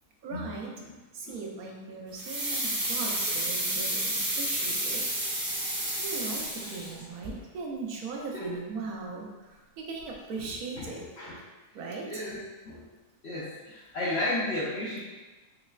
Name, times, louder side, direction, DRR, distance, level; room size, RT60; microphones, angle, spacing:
voice 1, 0.2-0.7 1.1-5.1 5.8-11.1 11.7-12.2, right 4 dB, 75° right, 0 dB, 1.0 m, -39 dB
sound 1, 2.2-7.0 7.2-7.3, right 1 dB, 40° right, 0.9 m, -31 dB
Water tap faucet / Sink (filling or washing), 2.8-7.6 10.0-10.1, equal, 90° left, 1.9 m, -42 dB
voice 2, 10.8-11.4 12.1-12.9 13.2-15.0, left 1 dB, 65° left, -7 dB, 0.6 m, -34 dB
3.9 x 3.1 x 2.2 m, 1.2 s
omnidirectional pair, 1.6 m